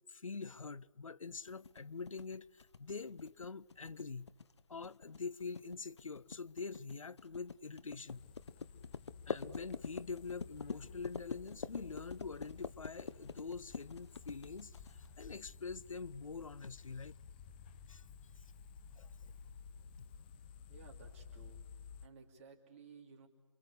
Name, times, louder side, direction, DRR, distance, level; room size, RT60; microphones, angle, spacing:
voice 1, 0.1-4.3 4.7-8.3 9.3-17.2 17.9-18.0 19.0-19.3, left 4 dB, 75° left, 0.8 m, -45 dB
sound 1, 1.5-15.2, left 5 dB, 55° left, 1.1 m, -46 dB
sound 2, 8.1-22.1, left 6 dB, 15° left, 0.9 m, -54 dB
voice 2, 20.7-23.3, right 5 dB, 25° right, 3.0 m, -58 dB
28.5 x 25.0 x 8.2 m
figure-of-eight pair, 155°, 17 cm